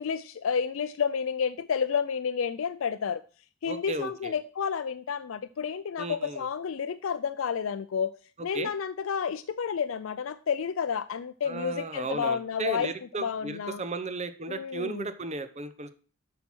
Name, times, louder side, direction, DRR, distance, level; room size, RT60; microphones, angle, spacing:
voice 1, 0.0-3.2 3.6-8.2 8.4-12.9 13.2-13.8 14.5-15.1, left 6 dB, 75° left, 11 dB, 0.4 m, -30 dB
voice 2, 3.6-4.3 6.0-6.5 8.5-8.7 11.4-15.9, right 3 dB, 35° right, 11 dB, 0.8 m, -35 dB
8.8 x 5.8 x 6.1 m, 0.39 s
head